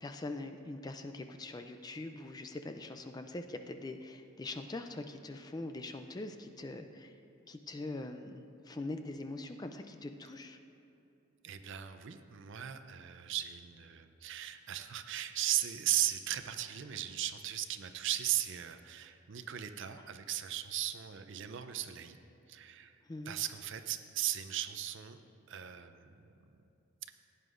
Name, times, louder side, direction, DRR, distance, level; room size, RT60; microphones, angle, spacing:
voice 1, 0.0-7.1 7.5-10.6 23.1-23.3, left 2 dB, 20° left, 7 dB, 0.3 m, -43 dB
voice 2, 11.4-22.2 22.5-22.9 23.3-25.2 25.5-26.1, right 12 dB, 55° right, 9 dB, 0.5 m, -37 dB
15.5 x 9.5 x 2.5 m, 2.9 s
head